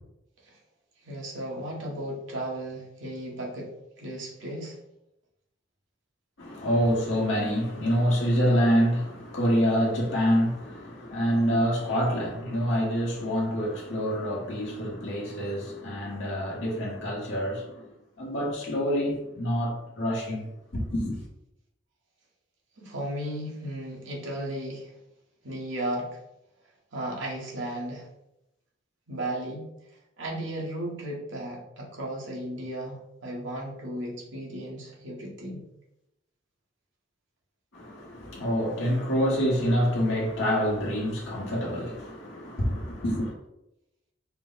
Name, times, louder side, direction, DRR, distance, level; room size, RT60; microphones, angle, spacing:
voice 1, 1.0-4.8 22.8-24.9 25.4-26.2 26.9-28.1 29.1-29.7 30.2-35.6, right 1 dB, 75° right, 1.1 m, -35 dB
voice 2, 6.4-17.9 18.2-20.5 20.7-21.2 37.7-43.3, equal, 70° left, 1.0 m, -26 dB
4.4 x 2.0 x 3.9 m
head